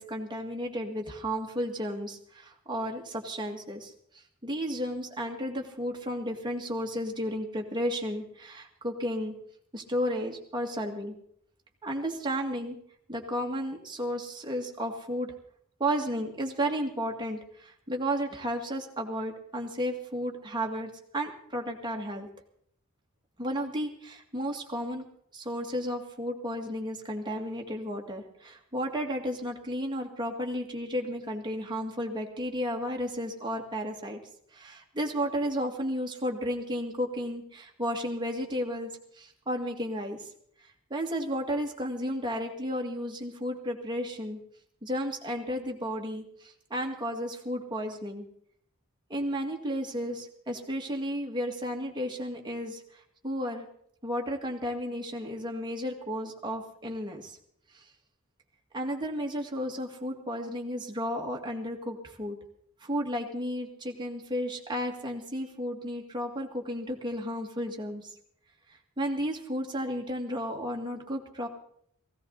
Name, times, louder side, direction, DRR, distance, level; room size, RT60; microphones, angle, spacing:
voice 1, 0.0-9.3 9.7-11.1 11.8-12.8 13.1-15.3 15.8-22.3 23.4-25.0 25.3-34.2 34.5-40.3 40.9-44.4 44.8-48.3 49.1-53.7 54.0-57.4 57.7-57.8 58.7-62.4 62.8-68.1 69.0-71.5, equal, 20° right, 1 dB, 2.0 m, -33 dB
17.0 x 16.5 x 4.0 m, 0.67 s
head